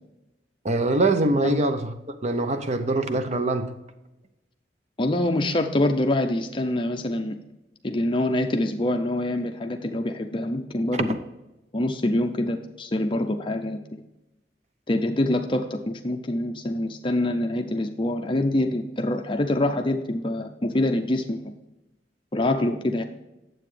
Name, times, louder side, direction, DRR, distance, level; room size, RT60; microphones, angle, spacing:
voice 1, 0.6-3.8 11.0-11.2, right 2 dB, 40° right, 0.7 m, -24 dB
voice 2, 5.0-7.4 7.8-11.1 11.7-14.0 14.9-21.5 22.3-23.0, left 1 dB, 30° left, 0.5 m, -25 dB
9.5 x 7.7 x 3.3 m
head